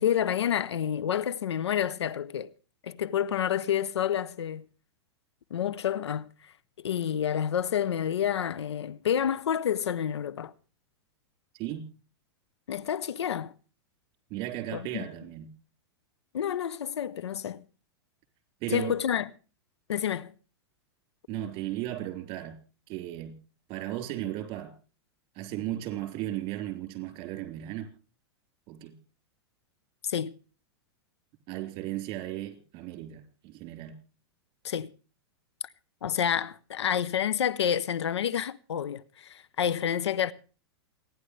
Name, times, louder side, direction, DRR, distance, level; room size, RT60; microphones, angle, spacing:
voice 1, 0.0-2.5 2.8-4.6 5.5-6.3 6.8-10.5 12.7-13.5 14.7-15.1 16.3-17.6 18.7-19.3 19.9-20.3 30.0-30.3 34.6-34.9 36.0-40.3, left 9 dB, 85° left, 0.8 m, -29 dB
voice 2, 11.5-11.9 14.3-15.5 18.6-19.0 21.3-22.6 22.9-23.4 23.7-24.7 25.3-27.9 28.7-29.0 31.5-34.0, right 13 dB, 45° right, 3.9 m, -35 dB
28.0 x 10.5 x 3.2 m
hypercardioid pair, 115°, 14 cm